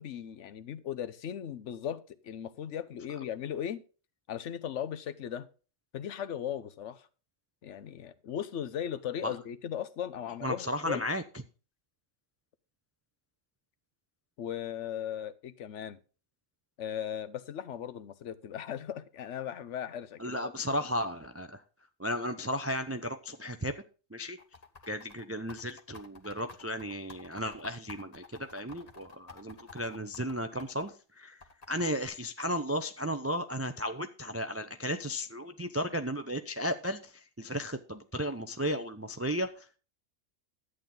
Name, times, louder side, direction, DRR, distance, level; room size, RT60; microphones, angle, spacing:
voice 1, 0.0-3.8 4.3-5.5 5.9-7.1 7.6-11.0 14.4-16.0 16.8-20.5, left 9 dB, 70° left, 1.1 m, -37 dB
voice 2, 10.4-11.2 20.2-21.6 22.0-23.8 24.1-24.4 24.9-39.8, equal, 20° right, 0.3 m, -34 dB
sound 1, 24.4-30.9 31.4-32.1, left 3 dB, 30° left, 1.2 m, -51 dB
11.5 x 8.9 x 3.9 m
omnidirectional pair, 1.3 m